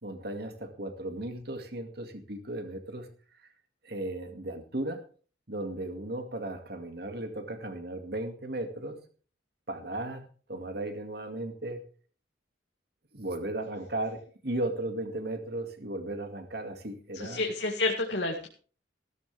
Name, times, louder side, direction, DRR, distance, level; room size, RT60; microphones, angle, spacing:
voice 1, 0.0-3.1 3.8-5.0 5.5-9.0 9.7-11.8 13.1-17.4, right 1 dB, 55° right, 6 dB, 2.2 m, -36 dB
voice 2, 17.1-18.5, left 2 dB, 65° left, 1 dB, 2.1 m, -29 dB
16.5 x 13.0 x 3.5 m, 0.40 s
head